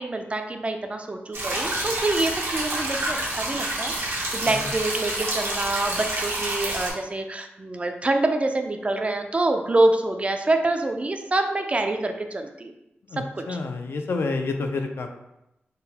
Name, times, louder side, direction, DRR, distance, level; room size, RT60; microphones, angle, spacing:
voice 1, 0.0-12.7 13.2-13.6, right 2 dB, 30° right, 5 dB, 0.3 m, -26 dB
sound 1, 1.3-6.9, right 1 dB, 90° right, 0.8 m, -28 dB
voice 2, 13.1-15.1, left 3 dB, 70° left, 5 dB, 0.3 m, -29 dB
3.7 x 2.1 x 2.7 m, 0.88 s
wide cardioid pair, 85°, 4 cm